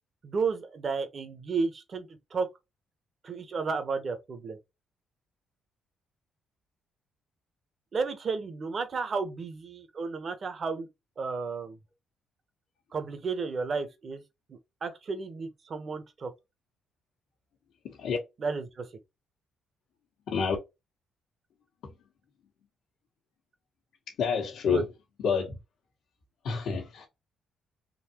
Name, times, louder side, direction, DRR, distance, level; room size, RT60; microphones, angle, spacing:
voice 1, 0.2-2.5 3.2-4.6 7.9-10.9 11.2-11.8 12.9-14.2 14.5-16.3 18.4-18.9 24.7-24.8, right 4 dB, 45° right, 0.9 m, -32 dB
voice 2, 17.8-18.2 20.3-20.5 24.2-24.8 25.2-25.5 26.4-27.1, left 6 dB, 75° left, 1.2 m, -28 dB
3.9 x 2.7 x 2.9 m
cardioid pair, 90°, 0 cm